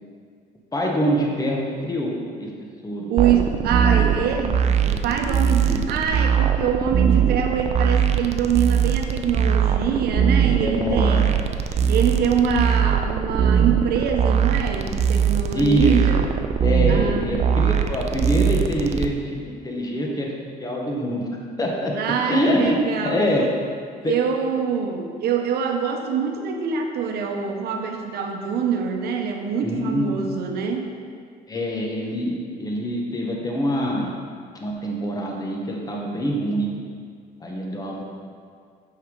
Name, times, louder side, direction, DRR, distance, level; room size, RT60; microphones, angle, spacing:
voice 1, 0.7-2.5 2.8-3.5 3.8-4.2 5.6-5.8 10.6-11.2 11.8-11.9 15.5-16.0 16.6-19.1 19.4-20.3 20.6-21.3 21.6-21.9 22.3-22.8 23.0-23.5 24.0-24.1 29.6-30.1 31.5-34.1 34.6-36.7 37.4-38.0, equal, 20° left, -1 dB, 1.0 m, -25 dB
voice 2, 3.1-11.3 11.9-16.3 16.9-17.3 21.9-23.2 24.0-30.9, right 7 dB, 70° right, 3 dB, 0.8 m, -24 dB
sound 1, 3.2-19.1, right 8 dB, 40° right, 0.4 m, -21 dB
5.7 x 5.7 x 3.7 m, 2.1 s
cardioid pair, 110°, 17 cm